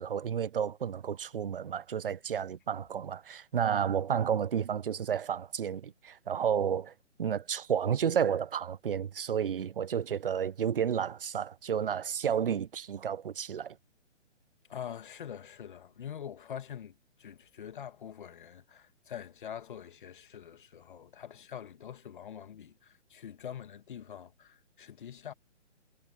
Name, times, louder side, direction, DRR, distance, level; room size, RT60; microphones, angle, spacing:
voice 1, 0.0-6.9 7.2-13.8, right 8 dB, 50° right, 0.9 m, -31 dB
voice 2, 14.7-25.3, left 9 dB, 45° left, 2.4 m, -44 dB
figure-of-eight pair, 135°, 35 cm